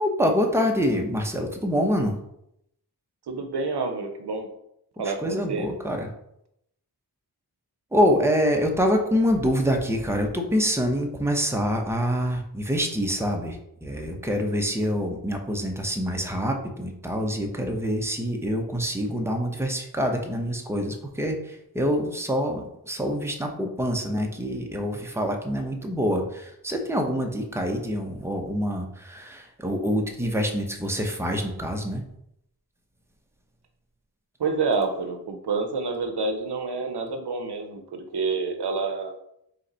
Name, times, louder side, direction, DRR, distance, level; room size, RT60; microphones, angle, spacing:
voice 1, 0.0-2.2 5.0-6.1 7.9-32.0, equal, 5° right, 3 dB, 0.8 m, -26 dB
voice 2, 3.3-4.5 5.0-5.7 34.4-39.1, right 4 dB, 80° right, 5 dB, 0.7 m, -28 dB
4.1 x 3.2 x 3.9 m, 0.78 s
cardioid pair, 45°, 40 cm